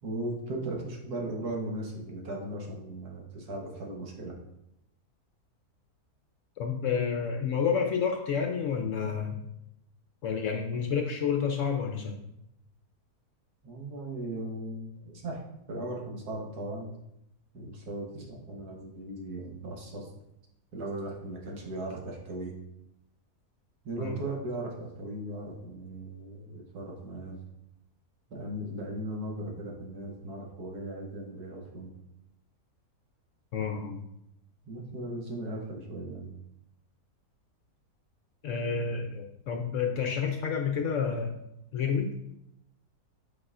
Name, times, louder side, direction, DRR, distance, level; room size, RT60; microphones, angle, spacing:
voice 1, 0.0-4.3 13.6-15.4 15.7-16.9 17.5-20.1 20.7-22.5 23.8-27.4 28.3-31.9 34.7-36.3, right 1 dB, 75° right, -1 dB, 1.8 m, -37 dB
voice 2, 6.6-9.5 10.2-12.2 24.0-24.2 33.5-34.0 38.4-41.4 41.7-42.1, left 6 dB, 65° left, 3 dB, 0.8 m, -30 dB
8.3 x 4.8 x 2.5 m, 0.82 s
omnidirectional pair, 1.7 m